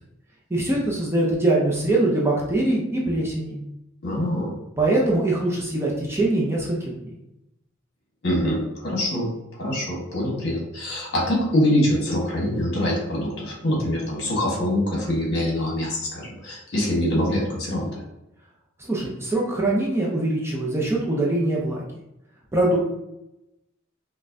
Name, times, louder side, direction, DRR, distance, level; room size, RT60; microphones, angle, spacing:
voice 1, 0.5-3.6 4.8-6.9 18.9-21.8 22.5-22.8, right 2 dB, 15° right, -4 dB, 0.6 m, -23 dB
voice 2, 4.0-4.5 8.2-9.3 9.6-18.0, left 1 dB, 55° left, -3 dB, 1.4 m, -24 dB
5.2 x 2.2 x 2.6 m, 0.89 s
head